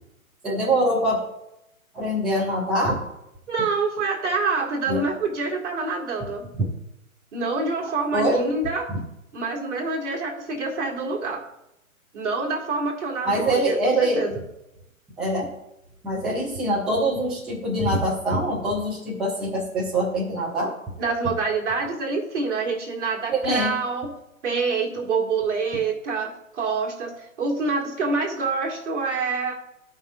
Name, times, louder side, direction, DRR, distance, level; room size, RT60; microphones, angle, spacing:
voice 1, 0.4-1.2 1.9-3.0 4.9-5.0 8.1-8.5 13.2-14.2 15.2-15.5 16.0-20.7 23.3-23.8, right 1 dB, ahead, -6 dB, 0.5 m, -24 dB
voice 2, 3.5-6.5 7.3-8.9 9.3-11.4 12.1-14.4 21.0-24.1 24.4-29.5, right 4 dB, 55° right, 0 dB, 2.2 m, -26 dB
14.5 x 5.6 x 2.5 m, 0.87 s
figure-of-eight pair, 125°, 42 cm